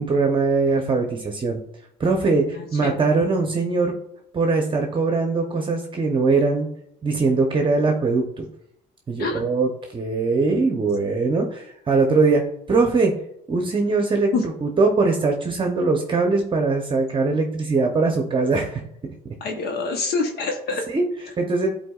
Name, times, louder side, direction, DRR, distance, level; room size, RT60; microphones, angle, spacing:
voice 1, 0.0-1.6 2.0-3.9 4.3-6.7 7.0-8.4 9.1-13.1 13.5-18.8 20.9-21.7, right 3 dB, 30° right, 2 dB, 0.9 m, -21 dB
voice 2, 19.4-20.9, left 4 dB, 70° left, 3 dB, 1.0 m, -25 dB
11.0 x 4.3 x 2.4 m, 0.75 s
cardioid pair, 110°, 17 cm